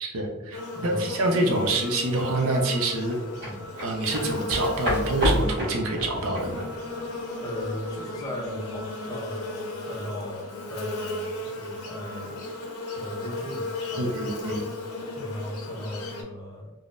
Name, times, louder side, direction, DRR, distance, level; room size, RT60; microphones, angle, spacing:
voice 1, 0.0-3.2 3.8-6.6 14.0-14.6, right 2 dB, 65° right, 1 dB, 0.6 m, -26 dB
Buzz, 0.5-16.2, left 2 dB, 85° left, 0.7 m, -35 dB
sound 1, 0.6-14.4, equal, 5° right, 1.4 m, -49 dB
voice 2, 0.7-1.1 3.4-3.7 7.4-12.4 12.9-14.2 15.1-16.7, equal, 15° left, -2 dB, 0.5 m, -37 dB
sound 2, 3.1-8.3 8.6-8.8, equal, 50° right, 1.5 m, -29 dB
3.6 x 2.0 x 2.4 m, 1.1 s
head